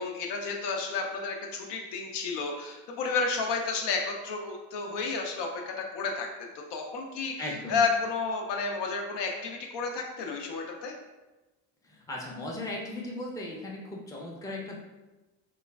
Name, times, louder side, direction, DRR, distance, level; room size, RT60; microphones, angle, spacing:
voice 1, 0.0-11.0, left 4 dB, 65° left, 2 dB, 0.6 m, -31 dB
voice 2, 7.4-7.8 11.8-14.8, left 1 dB, 10° left, -2 dB, 0.5 m, -37 dB
3.0 x 2.2 x 2.2 m, 1.1 s
supercardioid pair, 65°, 46 cm